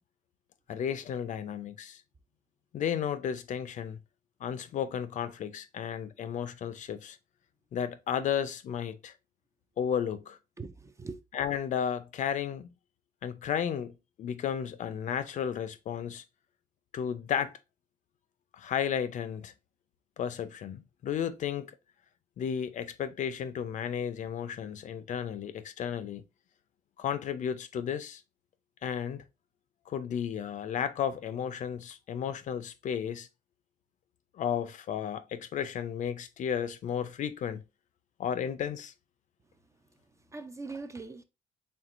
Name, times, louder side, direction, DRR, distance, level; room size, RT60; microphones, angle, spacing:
voice 1, 0.7-2.0 2.7-4.0 4.4-7.2 7.7-9.1 9.8-10.4 11.3-12.7 13.2-13.9 14.2-16.2 16.9-17.5 18.5-19.5 20.2-21.7 22.4-26.2 27.0-28.2 28.8-29.2 29.9-33.3 34.3-37.6 38.2-38.9, left 8 dB, 50° left, 0.5 m, -33 dB
voice 2, 10.6-11.2 40.3-41.2, right 3 dB, 20° right, 0.3 m, -41 dB
4.3 x 3.5 x 2.5 m
cardioid pair, 110°, 17 cm